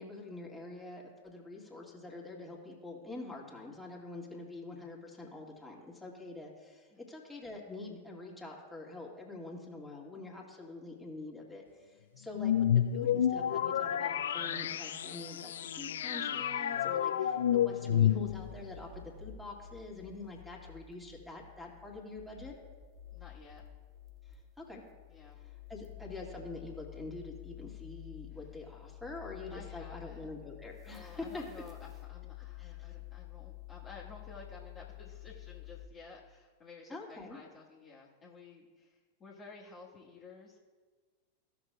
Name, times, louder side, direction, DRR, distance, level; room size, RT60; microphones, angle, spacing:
voice 1, 0.0-22.6 24.3-24.8 25.4-31.4 32.6-32.7 36.9-37.4, left 2 dB, 5° left, -3 dB, 1.9 m, -46 dB
sound 1, 12.3-18.6, left 10 dB, 60° left, 0.3 m, -30 dB
sound 2, 18.2-35.9, left 13 dB, 25° right, 1.0 m, -50 dB
voice 2, 23.1-23.6 25.1-25.4 29.5-30.3 30.9-40.6, left 4 dB, 20° left, -6 dB, 1.5 m, -53 dB
16.0 x 6.0 x 2.3 m, 1.5 s
figure-of-eight pair, 90°, 0 cm